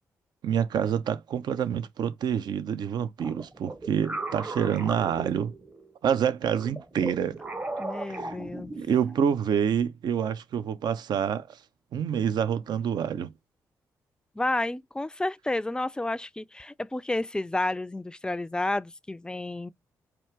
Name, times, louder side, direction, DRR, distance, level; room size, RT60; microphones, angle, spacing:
voice 1, 0.4-5.6 6.0-7.4 8.1-8.4 8.8-11.6 11.9-13.3, right 8 dB, 65° right, 0.5 m, -27 dB
sound 1, 3.2-6.0 6.5-9.3, right 2 dB, 25° right, 0.7 m, -37 dB
voice 2, 7.8-8.7 14.3-19.7, left 2 dB, 10° left, 0.4 m, -31 dB
4.5 x 2.4 x 4.5 m
hypercardioid pair, 40°, 8 cm